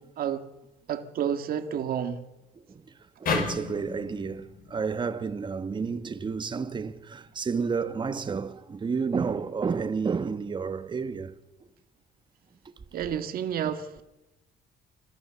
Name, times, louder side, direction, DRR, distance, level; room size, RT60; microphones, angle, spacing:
voice 1, 0.9-2.2 12.9-14.0, right 9 dB, 60° right, 1.9 m, -30 dB
voice 2, 3.2-11.3, right 5 dB, 25° right, 1.3 m, -31 dB
sound 1, 3.3-6.5, left 5 dB, 60° left, 5.4 m, -34 dB
27.0 x 14.5 x 7.0 m
cardioid pair, 110°, 17 cm